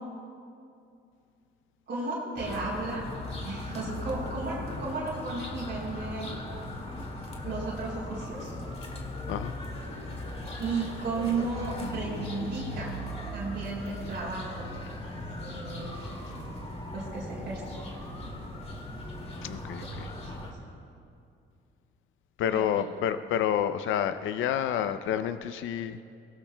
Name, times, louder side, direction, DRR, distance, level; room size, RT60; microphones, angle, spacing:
voice 1, 1.9-3.1 3.4-6.3 7.4-8.5 10.6-13.0 13.3-14.7 15.4-16.0 16.9-17.6 20.2-20.5 22.5-22.8, right 3 dB, 60° right, -4 dB, 3.6 m, -34 dB
sound 1, 2.4-20.5, left 1 dB, 30° left, 2.3 m, -38 dB
voice 2, 19.4-20.1 22.4-26.0, left 9 dB, 80° left, 11 dB, 0.6 m, -29 dB
22.5 x 17.5 x 2.3 m, 2.4 s
cardioid pair, 90°, 20 cm